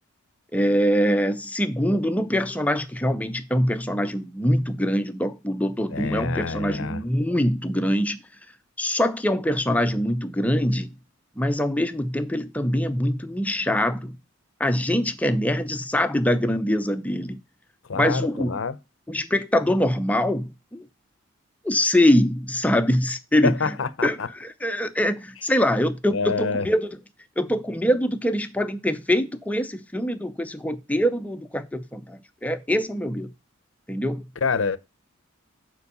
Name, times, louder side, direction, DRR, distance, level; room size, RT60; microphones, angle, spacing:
voice 1, 0.5-8.2 8.8-10.9 11.4-14.2 14.6-17.4 17.9-18.6 19.1-20.8 21.6-23.8 24.0-27.0 27.4-33.3 33.9-34.2, equal, 5° left, 0.5 m, -24 dB
voice 2, 5.9-7.0 17.9-18.8 23.4-24.3 26.1-26.6 34.4-34.8, left 5 dB, 65° left, 0.6 m, -26 dB
7.0 x 4.5 x 5.4 m
head